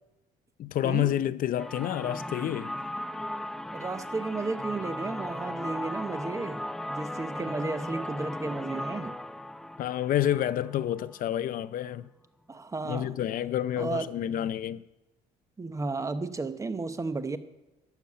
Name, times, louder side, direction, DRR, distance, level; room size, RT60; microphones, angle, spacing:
voice 1, 0.6-2.8 9.8-12.1 12.8-14.8, left 11 dB, 55° left, 0.6 m, -29 dB
sound 1, 1.6-11.3, left 1 dB, 5° left, 0.3 m, -37 dB
voice 2, 3.7-6.6 6.9-9.2 12.5-13.2 13.8-14.1 15.6-17.4, right 3 dB, 20° right, 0.9 m, -33 dB
11.5 x 7.1 x 8.5 m
cardioid pair, 110°, 17 cm